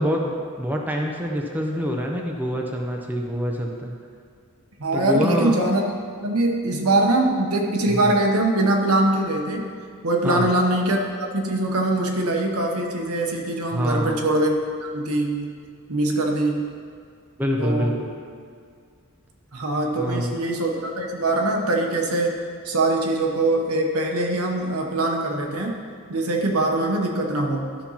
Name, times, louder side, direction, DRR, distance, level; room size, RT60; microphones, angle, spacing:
voice 1, 0.0-3.9 4.9-5.5 7.9-8.1 10.2-10.5 13.7-14.2 17.4-18.1 20.0-20.4, equal, 10° right, 0 dB, 0.6 m, -25 dB
voice 2, 4.8-5.8 6.2-9.7 10.0-15.5 15.9-16.7 17.6-18.1 19.5-25.8 26.1-27.7, right 2 dB, 75° right, 1 dB, 1.1 m, -23 dB
12.0 x 4.4 x 5.7 m, 2.1 s
head